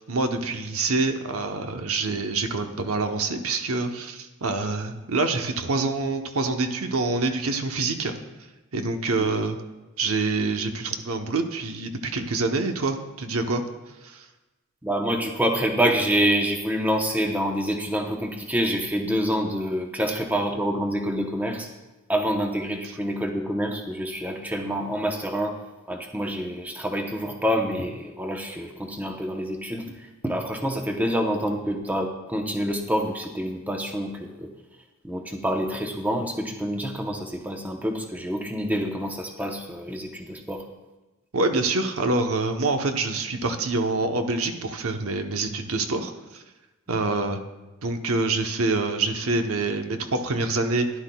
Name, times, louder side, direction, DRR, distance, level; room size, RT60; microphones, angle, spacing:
voice 1, 0.0-8.1 8.7-9.6 10.0-13.6 14.0-14.3 41.3-46.4 46.9-47.4 47.8-51.0, right 3 dB, 75° right, 6 dB, 0.9 m, -26 dB
voice 2, 14.8-21.7 22.1-25.5 25.9-34.5 35.0-40.6, equal, 5° right, 2 dB, 0.8 m, -27 dB
16.0 x 11.0 x 2.3 m, 1.1 s
head